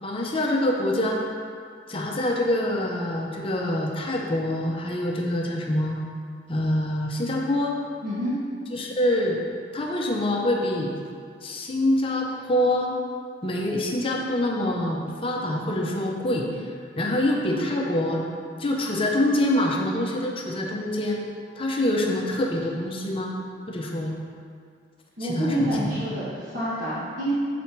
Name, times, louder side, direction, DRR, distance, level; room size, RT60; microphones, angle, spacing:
voice 1, 0.0-1.2 1.9-6.0 6.5-7.8 8.7-9.4 9.7-10.9 11.4-13.0 13.4-16.5 17.0-18.3 18.6-21.2 21.6-23.3 23.7-24.1 25.2-25.9, left 1 dB, 30° left, -1 dB, 0.7 m, -25 dB
voice 2, 8.0-8.3 25.2-27.3, equal, 50° right, -9 dB, 1.2 m, -28 dB
7.1 x 4.2 x 4.5 m, 2.2 s
head